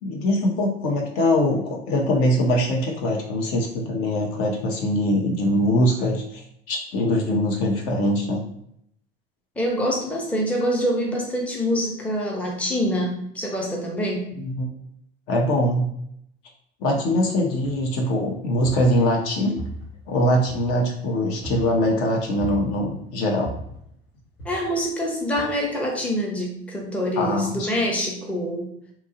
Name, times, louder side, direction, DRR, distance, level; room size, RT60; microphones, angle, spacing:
voice 1, 0.0-8.4 14.4-14.7 15.3-15.9 16.8-19.6 20.1-23.5 27.2-27.7, left 1 dB, 45° left, 0 dB, 0.6 m, -22 dB
voice 2, 9.6-14.3 24.4-28.7, equal, 5° left, -1 dB, 0.6 m, -25 dB
sound 1, 17.6-18.1 18.5-19.3 19.6-21.0 21.4-21.9 22.4-23.0 23.4-23.9 24.4-24.9 25.4-25.5, right 1 dB, 70° left, 0.9 m, -37 dB
2.8 x 2.2 x 2.6 m, 0.72 s
figure-of-eight pair, 65°, 31 cm